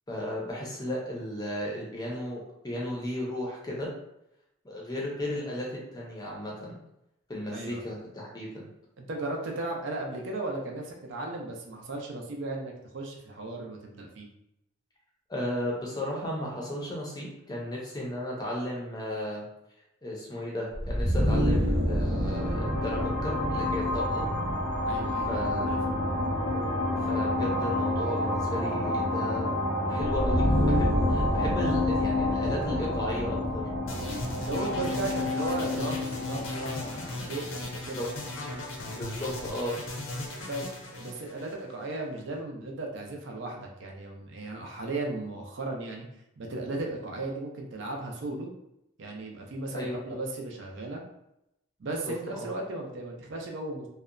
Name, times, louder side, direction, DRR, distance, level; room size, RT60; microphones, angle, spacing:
voice 1, 0.1-3.9 4.6-6.8 7.3-8.7 15.3-19.5 20.0-24.2 25.3-25.8 27.0-29.6 29.9-33.6 37.9-38.1 38.8-39.8 49.7-50.0 51.8-51.9 52.3-52.5, left 1 dB, 20° left, -3 dB, 0.5 m, -35 dB
voice 2, 7.5-7.8 9.0-14.3 24.8-25.3 25.6-25.8 34.4-38.0 40.5-46.1 46.4-48.5 49.0-51.0 51.8-53.9, right 2 dB, 60° right, 1 dB, 0.4 m, -36 dB
sound 1, 20.7-38.4, left 1 dB, 90° right, 0.8 m, -28 dB
sound 2, 33.9-42.0, left 2 dB, 75° left, 0.6 m, -37 dB
2.7 x 2.1 x 2.4 m, 0.83 s
head